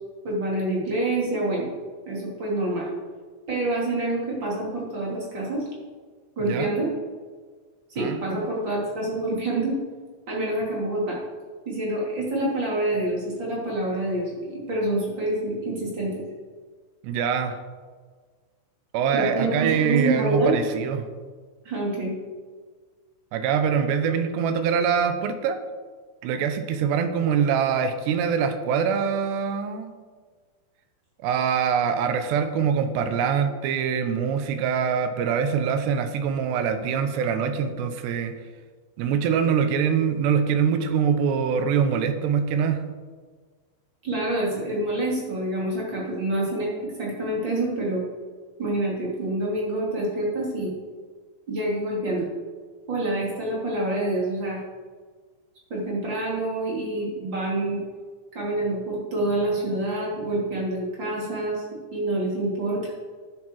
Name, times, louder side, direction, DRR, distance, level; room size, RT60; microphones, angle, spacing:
voice 1, 0.2-1.7 2.1-2.9 3.5-5.6 6.4-6.9 7.9-9.8 10.3-11.2 11.6-16.2 19.1-20.6 21.6-22.1 44.0-48.0 48.6-50.7 51.5-52.3 52.9-54.6 55.7-57.8 58.3-61.7 61.9-62.9, right 2 dB, 30° right, -4 dB, 2.9 m, -27 dB
voice 2, 8.0-8.4 17.0-17.6 18.9-21.1 23.3-25.6 26.2-29.9 31.2-38.3 39.0-42.8, right 7 dB, 75° right, 8 dB, 2.7 m, -24 dB
12.5 x 9.6 x 4.7 m, 1.5 s
omnidirectional pair, 5.5 m